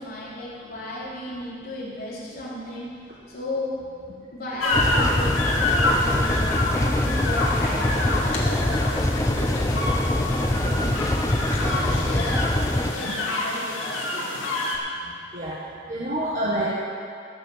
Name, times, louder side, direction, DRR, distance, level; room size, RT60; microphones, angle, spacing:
voice 1, 0.0-2.9 3.3-3.8 4.3-5.4 5.6-11.2 11.6-12.4 12.8-14.3, left 1 dB, 50° left, -8 dB, 4.1 m, -34 dB
sound 1, 4.6-14.8, left 2 dB, 85° left, 2.2 m, -27 dB
sound 2, 4.7-12.9, left 1 dB, 15° left, 0.6 m, -24 dB
voice 2, 15.9-16.7, right 1 dB, 40° right, -6 dB, 1.5 m, -27 dB
16.0 x 6.7 x 7.3 m, 2.4 s
head